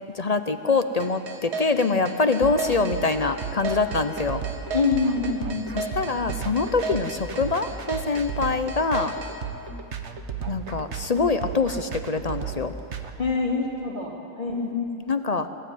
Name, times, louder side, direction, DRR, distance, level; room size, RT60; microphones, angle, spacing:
voice 1, 0.0-4.4 5.7-9.1 10.5-12.7 14.5-15.5, left 4 dB, 45° left, 9 dB, 0.5 m, -25 dB
sound 1, 1.0-9.3, right 4 dB, 80° right, 2.3 m, -33 dB
sound 2, 2.4-13.1, right 6 dB, 50° right, 1.4 m, -34 dB
voice 2, 4.7-5.7 13.2-14.6, left 4 dB, 30° left, -2 dB, 2.9 m, -25 dB
24.0 x 15.5 x 9.2 m, 2.7 s
omnidirectional pair, 1.7 m